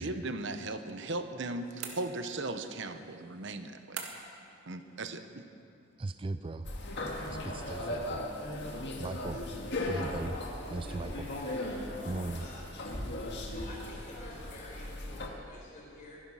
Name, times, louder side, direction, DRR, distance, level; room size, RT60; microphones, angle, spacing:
voice 1, 0.0-4.1 4.7-5.4, right 2 dB, 55° right, 8 dB, 1.0 m, -37 dB
sound 1, 1.8-2.5 4.0-4.5, right 6 dB, 85° right, 2.0 m, -42 dB
voice 2, 6.0-6.7 7.3-8.3 9.0-9.4 9.8-10.4 10.7-11.3 12.0-12.4, right 2 dB, 25° right, 11 dB, 0.4 m, -38 dB
sound 2, 6.6-15.3, left 1 dB, 55° left, 1.8 m, -37 dB
voice 3, 10.9-12.0 12.4-12.6 13.4-16.2, left 1 dB, 35° left, -3 dB, 4.3 m, -49 dB
23.5 x 11.0 x 5.6 m, 2.6 s
head